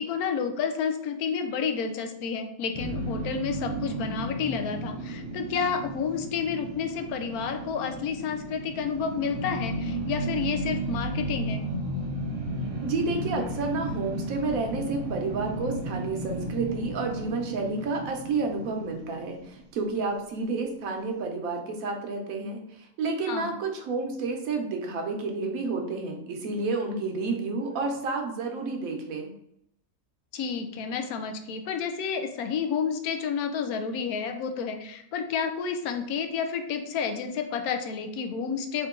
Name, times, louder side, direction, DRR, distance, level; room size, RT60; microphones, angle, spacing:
voice 1, 0.0-11.6 23.3-23.5 30.3-38.9, left 6 dB, 85° left, 6 dB, 1.1 m, -30 dB
sound 1, 2.7-19.9, right 2 dB, 50° right, 0.4 m, -34 dB
voice 2, 12.8-29.3, right 3 dB, 75° right, 3 dB, 1.1 m, -30 dB
3.7 x 2.6 x 3.6 m, 0.76 s
omnidirectional pair, 1.5 m